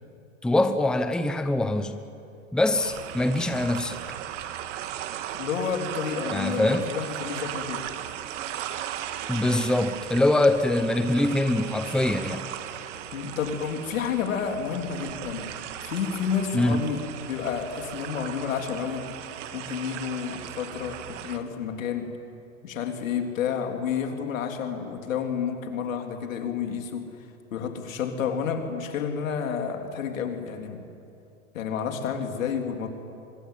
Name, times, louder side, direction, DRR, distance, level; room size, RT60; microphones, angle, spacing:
voice 1, 0.4-2.0 2.5-4.0 6.3-6.8 9.3-12.5 16.5-16.8, left 1 dB, ahead, 9 dB, 0.9 m, -23 dB
sound 1, 2.7-21.4, right 11 dB, 65° right, 2.0 m, -37 dB
voice 2, 5.4-7.8 13.1-15.5 15.8-19.1 19.5-22.1 22.6-27.1 27.5-30.8 31.5-32.9, left 7 dB, 80° left, 4 dB, 3.6 m, -30 dB
24.5 x 21.0 x 9.3 m, 2.6 s
hypercardioid pair, 125°, 39 cm